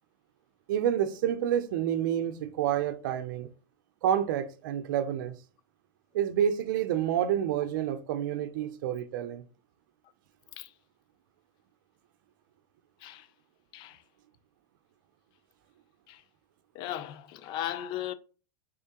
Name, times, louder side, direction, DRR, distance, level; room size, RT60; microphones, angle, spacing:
voice 1, 0.7-3.5 4.0-5.3 6.1-9.4, right 10 dB, 70° right, 0.5 m, -28 dB
voice 2, 16.7-18.1, left 12 dB, 45° left, 0.4 m, -37 dB
3.7 x 3.3 x 2.9 m
hypercardioid pair, 115°, 11 cm